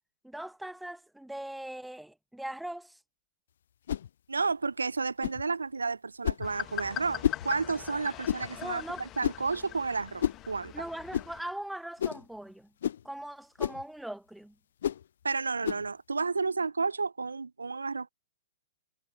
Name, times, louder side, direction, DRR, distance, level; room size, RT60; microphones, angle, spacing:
voice 1, 0.2-3.0 8.6-9.0 10.7-12.7 13.0-14.5, right 1 dB, ahead, 1.3 m, -40 dB
sound 1, 3.9-4.1 5.2-5.4 6.2-6.5 7.2-7.5 8.2-8.5 9.2-9.5 10.2-10.4 11.1-11.3 12.0-12.3 12.8-13.0 13.6-13.8 14.8-15.0 15.6-15.9, left 10 dB, 60° left, 0.4 m, -30 dB
voice 2, 4.3-10.8 15.2-18.1, right 4 dB, 80° right, 0.6 m, -31 dB
sound 2, 6.4-11.4, left 13 dB, 30° left, 1.4 m, -41 dB
figure-of-eight pair, 110°, 0 cm